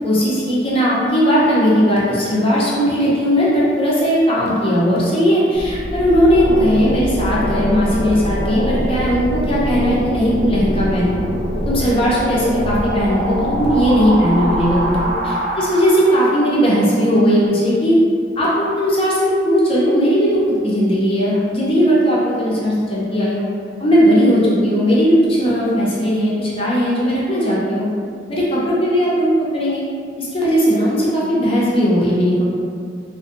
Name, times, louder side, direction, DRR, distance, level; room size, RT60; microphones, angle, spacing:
voice 1, 0.0-11.2 11.6-18.0 18.4-20.3 20.6-23.4 23.8-27.9 28.3-29.8 30.2-32.5, equal, 30° left, -7 dB, 0.5 m, -17 dB
sound 1, 5.5-16.5, equal, 75° right, 0.5 m, -23 dB
2.5 x 2.1 x 2.4 m, 2.2 s
head